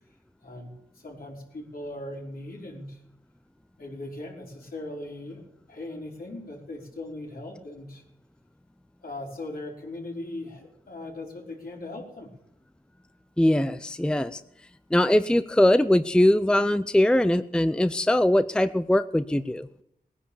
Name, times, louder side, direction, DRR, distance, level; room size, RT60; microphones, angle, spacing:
voice 1, 0.4-3.0 3.8-5.4 5.7-8.0 9.0-12.3, left 2 dB, 65° left, -2 dB, 5.1 m, -39 dB
voice 2, 13.4-14.4 14.9-19.7, left 1 dB, 5° left, 12 dB, 0.6 m, -21 dB
19.0 x 10.5 x 7.2 m, 0.76 s
wide cardioid pair, 75°, 16 cm